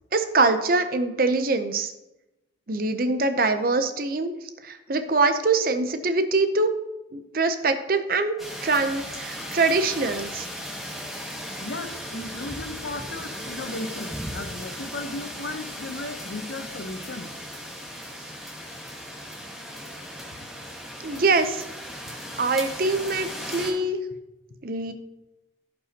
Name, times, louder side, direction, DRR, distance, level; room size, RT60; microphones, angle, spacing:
voice 1, 0.1-1.9 2.7-4.3 4.6-6.7 7.1-8.3 8.6-10.5 21.0-21.6 22.4-24.0 24.6-24.9, right 3 dB, 50° right, 9 dB, 0.6 m, -23 dB
sound 1, 8.4-23.7, equal, ahead, 1.8 m, -37 dB
voice 2, 11.6-17.3 21.1-21.2, left 2 dB, 80° left, 7 dB, 0.9 m, -35 dB
15.5 x 5.4 x 2.9 m, 0.98 s
head